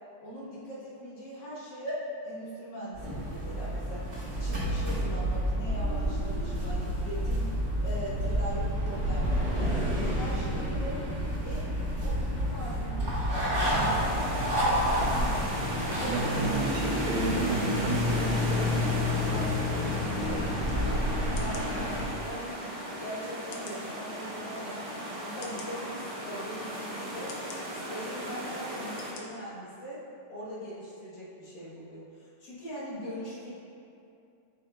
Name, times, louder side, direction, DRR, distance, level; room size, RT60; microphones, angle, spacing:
voice 1, 0.2-4.1 4.4-7.5 7.8-9.8 10.1-11.0 11.4-15.3 16.0-16.6 19.3-19.5 21.4-22.7 23.0-24.9 25.2-27.3 27.9-30.0 30.3-33.5, equal, 55° left, -7 dB, 1.8 m, -41 dB
sound 1, 2.9-22.0, equal, 25° right, 1.1 m, -29 dB
sound 2, 13.5-29.1, equal, 50° right, 0.4 m, -37 dB
voice 2, 16.6-20.8, right 3 dB, 85° right, 0 dB, 1.6 m, -34 dB
sound 3, 20.6-20.8 21.4-21.7 22.4-22.5 23.5-23.8 24.5-24.6 25.4-25.7 26.5-26.6 27.3-27.6 28.3-28.4 29.0-29.2 29.7-29.8, left 5 dB, 80° left, 1.6 m, -46 dB
7.3 x 6.6 x 2.3 m, 2.6 s
omnidirectional pair, 2.4 m